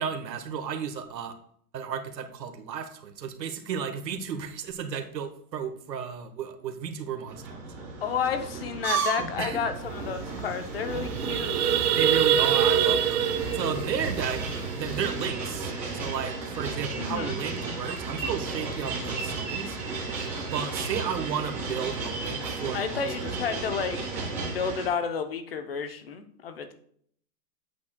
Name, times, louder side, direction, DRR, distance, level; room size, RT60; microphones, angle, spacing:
voice 1, 0.0-1.3 1.7-7.5 9.4-9.6 12.0-14.4 14.8-19.8 20.5-23.4, right 7 dB, 80° right, 6 dB, 1.5 m, -33 dB
sound 1, 7.3-24.9, right 4 dB, 5° right, 0.9 m, -33 dB
voice 2, 8.0-11.7 17.0-17.4 22.7-24.0 24.3-26.7, left 6 dB, 35° left, 9 dB, 0.6 m, -31 dB
sound 2, 9.9-10.0 10.2-10.4 10.8-15.1, right 9 dB, 65° right, 0.7 m, -25 dB
10.0 x 8.3 x 2.2 m, 0.64 s
hypercardioid pair, 175°, 50 cm